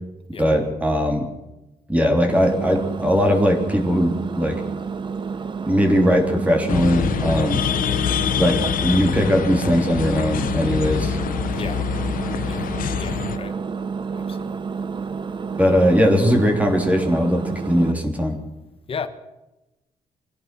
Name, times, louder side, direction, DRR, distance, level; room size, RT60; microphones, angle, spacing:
voice 1, 0.4-1.3 1.9-4.6 5.6-7.6 8.4-11.2 15.6-18.4, equal, 10° right, 3.3 m, -19 dB
Engine, 2.3-17.9, right 5 dB, 35° right, 1.0 m, -30 dB
sound 1, 6.7-13.4, left 9 dB, 90° left, 1.1 m, -25 dB
voice 2, 13.0-13.6 14.2-14.6 15.8-15.9 18.9-19.1, left 6 dB, 40° left, 1.6 m, -34 dB
25.5 x 17.0 x 6.1 m
wide cardioid pair, 160°, 14 cm